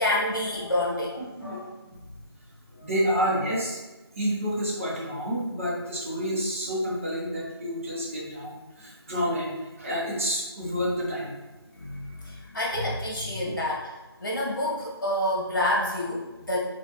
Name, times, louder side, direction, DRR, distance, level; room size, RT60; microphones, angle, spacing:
voice 1, 0.0-1.7 2.7-2.9 11.7-13.9 14.2-16.6, left 1 dB, 50° left, -3 dB, 1.3 m, -28 dB
voice 2, 2.8-3.8 4.1-11.3, equal, 30° right, -5 dB, 1.0 m, -29 dB
5.7 x 2.5 x 2.9 m, 1.1 s
figure-of-eight pair, 165°, 14 cm